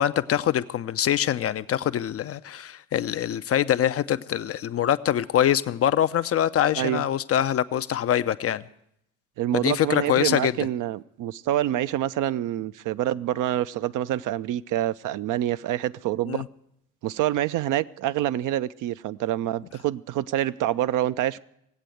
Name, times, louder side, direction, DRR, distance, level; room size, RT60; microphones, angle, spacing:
voice 1, 0.0-8.6 9.6-10.5 16.3-16.4, left 10 dB, 35° left, 0.5 m, -24 dB
voice 2, 9.4-16.4 17.0-21.4, right 12 dB, 45° right, 0.5 m, -26 dB
18.0 x 8.2 x 7.8 m
hypercardioid pair, 55°, 43 cm